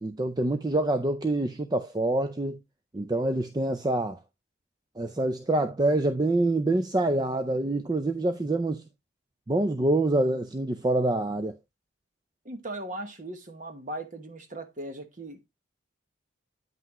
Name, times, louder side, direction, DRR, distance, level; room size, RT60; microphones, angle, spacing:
voice 1, 0.0-2.6 2.9-4.2 5.0-8.8 9.5-11.5, right 2 dB, 20° right, 0.4 m, -26 dB
voice 2, 12.4-15.5, right 1 dB, 40° right, 1.1 m, -38 dB
9.2 x 5.7 x 3.0 m
head